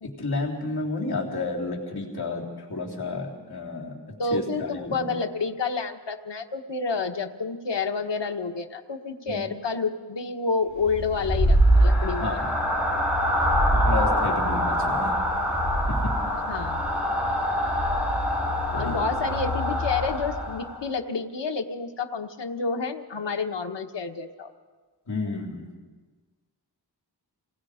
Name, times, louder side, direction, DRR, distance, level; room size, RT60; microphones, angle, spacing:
voice 1, 0.0-2.4 2.7-3.9 4.3-5.1 9.3-9.4 12.2-12.5 13.7-15.2 15.9-16.1 18.7-19.1 25.1-25.6, left 3 dB, 65° left, -2 dB, 3.6 m, -31 dB
voice 2, 4.2-12.4 16.5-16.8 18.7-24.5, left 4 dB, 90° left, 5 dB, 1.4 m, -29 dB
sound 1, 10.8-20.8, equal, 5° right, 6.5 m, -24 dB
28.0 x 19.5 x 5.1 m, 1.4 s
wide cardioid pair, 100°, 41 cm